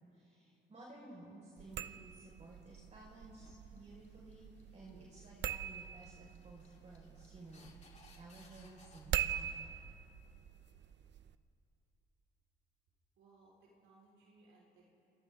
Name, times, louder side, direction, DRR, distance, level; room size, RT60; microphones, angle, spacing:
voice 1, 0.1-9.8, right 2 dB, 35° right, -4 dB, 4.9 m, -55 dB
sound 1, 1.6-11.3, right 10 dB, 65° right, 0.7 m, -44 dB
sound 2, 3.2-9.0, left 4 dB, 35° left, 3.9 m, -65 dB
voice 2, 13.2-14.8, right 3 dB, 85° right, -4 dB, 4.4 m, -64 dB
28.0 x 26.5 x 3.7 m, 2.9 s
cardioid pair, 90°, 20 cm